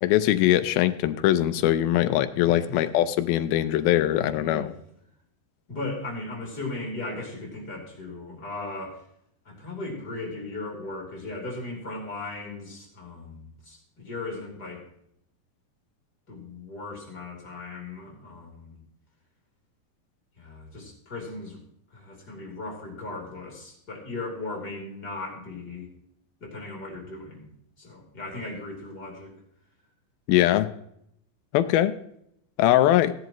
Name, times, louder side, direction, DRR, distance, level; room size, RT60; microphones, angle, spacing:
voice 1, 0.0-4.7 30.3-30.7 31.5-31.9 32.6-33.1, left 13 dB, 85° left, 12 dB, 2.5 m, -21 dB
voice 2, 2.4-2.8 4.2-4.7 5.7-9.0 9.4-14.8 16.3-18.8 20.4-21.6 21.9-25.9 26.4-27.5 27.8-29.3, left 2 dB, 25° left, -1 dB, 3.4 m, -37 dB
16.5 x 10.5 x 3.0 m, 0.73 s
omnidirectional pair, 4.3 m